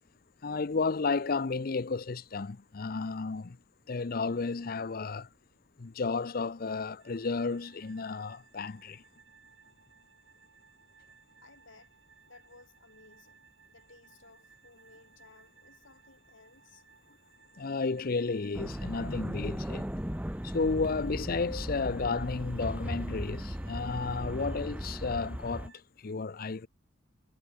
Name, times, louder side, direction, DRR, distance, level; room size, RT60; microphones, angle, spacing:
voice 1, 0.4-3.6 3.9-5.3 5.8-9.0 17.6-19.9 20.4-25.7 26.0-26.7, left 4 dB, 50° left, 0.6 m, -32 dB
sound 1, 7.0-25.8, right 6 dB, 70° right, 2.8 m, -61 dB
voice 2, 11.4-12.0 12.3-16.8, left 3 dB, 75° left, 3.3 m, -58 dB
sound 2, 18.5-25.7, equal, 5° right, 1.0 m, -37 dB
head